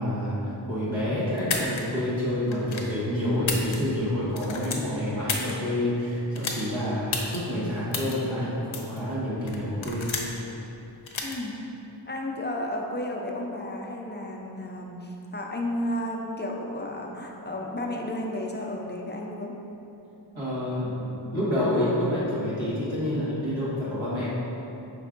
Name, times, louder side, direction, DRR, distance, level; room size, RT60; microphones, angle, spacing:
voice 1, 0.0-10.2 20.3-24.3, left 1 dB, 80° right, -9 dB, 1.3 m, -28 dB
sound 1, 1.4-1.8 2.5-2.9 3.3-4.1 4.3-5.5 6.3-6.6 7.1-7.4 7.9-8.1 8.7-9.0 9.5-10.4 11.1-11.3, left 5 dB, 85° left, 0.6 m, -31 dB
voice 2, 11.2-11.6 12.1-19.5, left 1 dB, 25° left, 0 dB, 0.5 m, -32 dB
5.3 x 3.4 x 2.5 m, 2.9 s
wide cardioid pair, 40°, 47 cm